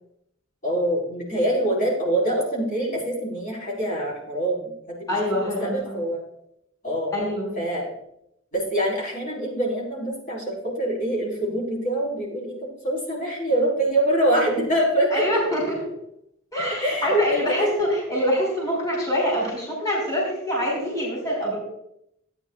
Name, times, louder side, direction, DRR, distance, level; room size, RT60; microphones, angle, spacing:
voice 1, 0.6-4.6 5.0-6.2 6.8-7.1 7.6-7.9 8.5-12.6 12.8-15.2 16.6-17.7, right 1 dB, 40° left, -4 dB, 4.4 m, -25 dB
voice 2, 5.1-6.0 7.1-7.6 15.1-15.9 16.5-21.6, left 1 dB, 20° left, -4 dB, 4.3 m, -25 dB
16.5 x 9.6 x 2.4 m, 0.77 s
head